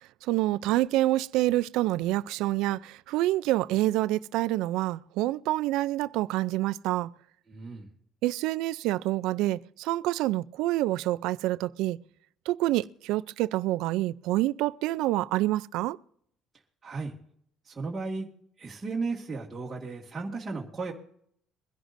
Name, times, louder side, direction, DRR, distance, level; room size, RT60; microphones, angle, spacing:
voice 1, 0.2-7.1 8.2-12.0 12.5-16.0, right 16 dB, 80° right, 0.4 m, -27 dB
voice 2, 7.5-7.9 16.8-17.1 17.6-18.3 18.6-20.9, right 3 dB, 15° right, 1.8 m, -35 dB
23.0 x 11.0 x 2.6 m
cardioid pair, 135°, 0 cm